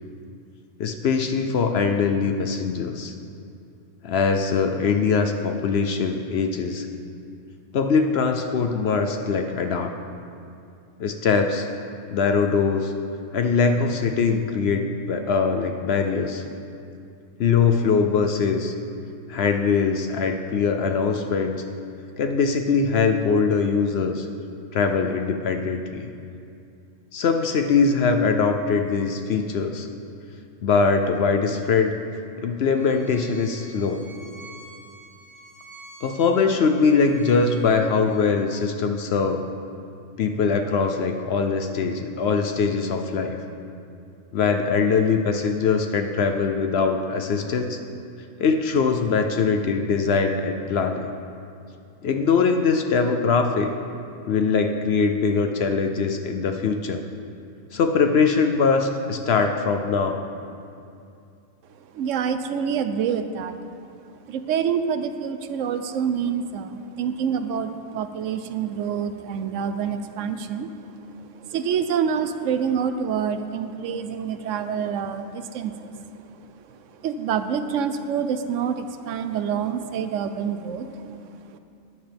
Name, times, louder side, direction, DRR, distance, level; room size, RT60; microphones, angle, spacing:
voice 1, 0.8-3.2 4.0-6.9 7.7-9.9 11.0-11.7 12.1-12.9 13.3-16.4 17.4-18.7 19.3-21.6 22.2-24.3 24.7-26.1 27.1-29.9 30.6-32.0 32.4-34.1 36.0-39.4 40.2-43.4 44.3-47.8 48.4-51.1 52.0-53.7 54.3-57.0 57.7-60.2, left 5 dB, 60° left, 5 dB, 0.7 m, -22 dB
Bowed string instrument, 32.8-38.2, right 2 dB, 25° left, 2.6 m, -47 dB
voice 2, 61.9-63.5 64.3-70.7 71.4-75.9 77.0-81.1 81.5-81.6, right 7 dB, 75° right, 9 dB, 0.9 m, -27 dB
13.5 x 9.4 x 3.4 m, 2.5 s
omnidirectional pair, 1.4 m